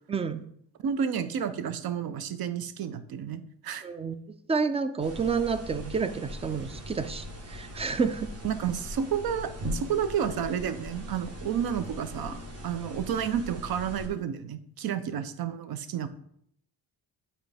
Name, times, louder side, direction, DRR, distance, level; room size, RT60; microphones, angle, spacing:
voice 1, 0.1-0.4 3.8-4.2 4.5-8.3, right 5 dB, 15° right, 11 dB, 0.3 m, -29 dB
voice 2, 0.8-3.8 8.4-12.4 12.6-16.1, right 8 dB, 60° right, 12 dB, 0.7 m, -31 dB
sound 1, 5.0-14.1, equal, 35° right, 1.2 m, -40 dB
8.3 x 4.4 x 3.4 m, 0.69 s
cardioid pair, 120°, 41 cm